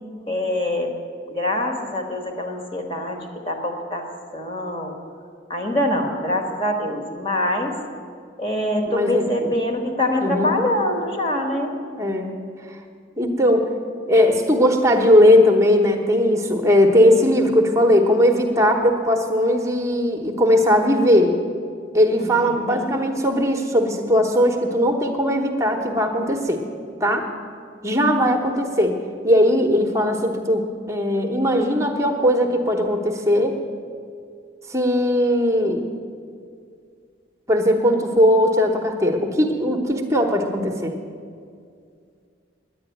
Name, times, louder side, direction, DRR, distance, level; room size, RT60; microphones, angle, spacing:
voice 1, 0.3-0.9 1.3-4.1 4.3-5.0 5.5-7.8 8.4-11.7 22.2-23.0 28.2-28.3, left 1 dB, 30° left, 3 dB, 1.5 m, -24 dB
voice 2, 8.9-9.5 10.2-10.5 12.0-12.3 12.7-12.8 13.2-13.7 14.1-21.3 21.9-26.6 27.0-27.3 27.8-29.0 29.2-33.6 34.7-35.8 37.5-41.0, equal, 15° right, 4 dB, 1.0 m, -19 dB
10.0 x 9.9 x 9.1 m, 2.3 s
head